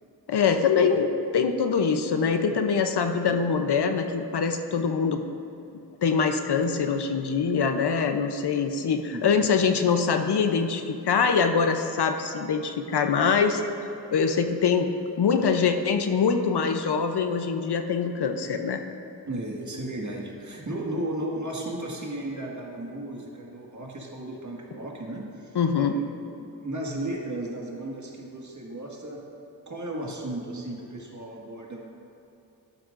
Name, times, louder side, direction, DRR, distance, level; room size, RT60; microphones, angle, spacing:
voice 1, 0.3-5.2 6.0-13.6 14.1-14.9 15.2-18.8 25.5-26.0, left 5 dB, 75° left, 6 dB, 0.8 m, -24 dB
voice 2, 19.3-26.0 26.4-29.2 29.7-31.9, right 1 dB, 45° right, -2 dB, 1.9 m, -35 dB
12.0 x 12.0 x 2.6 m, 2.9 s
cardioid pair, 70°, 40 cm